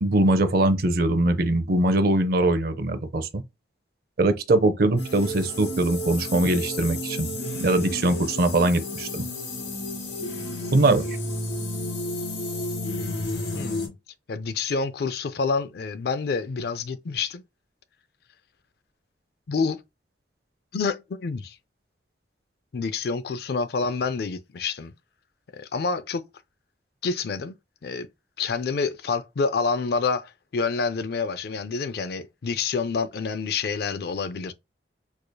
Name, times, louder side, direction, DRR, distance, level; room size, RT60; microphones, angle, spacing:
voice 1, 0.0-3.4 4.2-9.2 10.7-11.0, right 2 dB, 55° right, 0.5 m, -22 dB
sound 1, 5.0-13.9, left 1 dB, 85° left, 2.1 m, -32 dB
voice 2, 13.5-13.9 14.3-17.4 19.5-19.8 20.7-21.6 22.7-24.9 25.5-26.2 27.0-27.5 27.8-28.1 28.4-34.5, left 4 dB, 60° left, 0.4 m, -28 dB
4.7 x 2.7 x 2.2 m
head